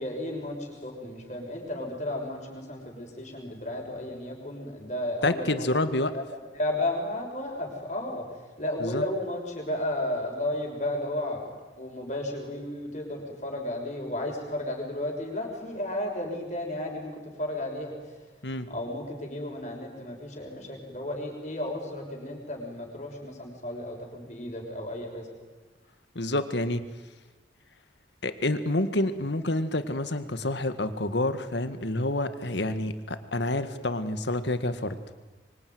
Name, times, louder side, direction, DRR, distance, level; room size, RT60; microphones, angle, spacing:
voice 1, 0.0-5.7 6.1-11.5 11.8-18.1 18.7-25.3, left 1 dB, 40° left, 1 dB, 6.2 m, -33 dB
voice 2, 5.2-6.2 8.8-9.0 18.4-18.7 26.1-26.8 28.2-35.0, left 1 dB, 70° left, 10 dB, 1.7 m, -28 dB
25.0 x 24.0 x 9.6 m, 1.3 s
head